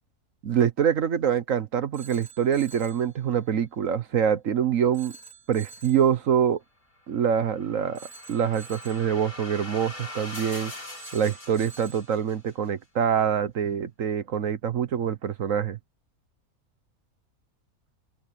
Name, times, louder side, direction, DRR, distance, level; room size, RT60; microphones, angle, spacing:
voice 1, 0.4-5.1 5.5-6.6 7.1-8.0 8.3-10.7 11.1-15.8, right 8 dB, 60° right, 1.3 m, -25 dB
Telephone, 1.9-3.1 4.9-6.1 7.9-9.1 11.0-12.1, right 5 dB, 40° left, 4.5 m, -47 dB
sound 1, 7.2-12.5, left 2 dB, 65° left, 7.0 m, -42 dB
open air
omnidirectional pair, 1.6 m